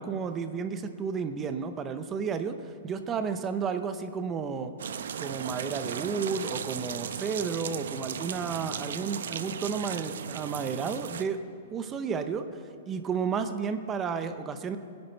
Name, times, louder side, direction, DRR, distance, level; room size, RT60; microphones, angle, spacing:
voice 1, 0.0-4.7 5.2-11.4 11.7-12.5 12.9-14.8, right 6 dB, 15° right, 9 dB, 0.7 m, -32 dB
sound 1, 4.8-11.2, right 7 dB, 75° right, 0.7 m, -36 dB
21.0 x 10.5 x 4.5 m, 2.8 s
hypercardioid pair, 170°, 0 cm